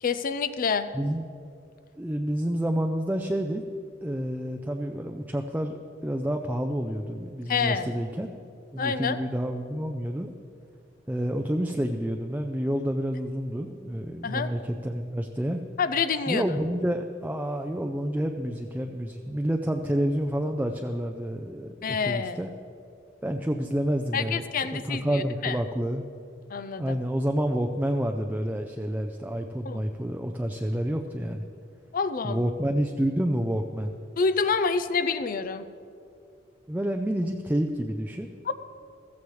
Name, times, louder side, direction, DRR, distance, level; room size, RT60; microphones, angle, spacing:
voice 1, 0.0-0.9 7.5-7.9 8.8-9.2 14.2-14.5 15.8-16.5 21.8-22.4 24.1-25.6 26.5-27.0 29.6-29.8 31.9-32.5 34.2-35.6 38.5-38.6, left 5 dB, 50° left, 12 dB, 0.5 m, -27 dB
voice 2, 2.0-3.7 4.0-8.3 8.7-10.3 11.1-15.6 16.3-22.5 23.2-24.4 24.7-26.1 26.8-31.4 32.2-34.0 36.7-38.3, equal, 10° right, 4 dB, 0.5 m, -29 dB
15.5 x 14.5 x 3.2 m, 2.5 s
head